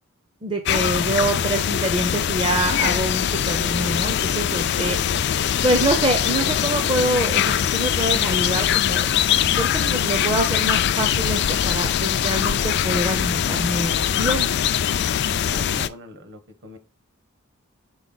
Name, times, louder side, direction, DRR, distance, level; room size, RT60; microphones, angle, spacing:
voice 1, 0.4-5.4 5.6-14.5, right 1 dB, 25° right, 4 dB, 0.6 m, -25 dB
sound 1, 0.7-15.9, left 9 dB, 50° left, 0.3 m, -22 dB
voice 2, 15.4-16.8, right 2 dB, 55° right, 7 dB, 1.3 m, -39 dB
6.2 x 4.0 x 4.0 m, 0.30 s
head